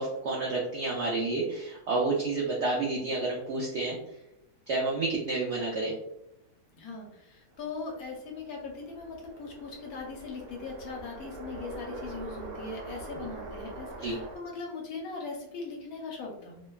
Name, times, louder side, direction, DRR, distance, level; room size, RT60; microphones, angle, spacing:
voice 1, 0.0-4.0 4.7-5.9 13.2-13.3 14.0-14.2, right 3 dB, 75° right, -3 dB, 0.6 m, -30 dB
voice 2, 6.7-16.6, left 4 dB, 70° left, 0 dB, 1.1 m, -40 dB
sound 1, 7.6-14.4, right 2 dB, 60° right, 1.0 m, -43 dB
2.9 x 2.1 x 2.2 m, 0.82 s
omnidirectional pair, 1.7 m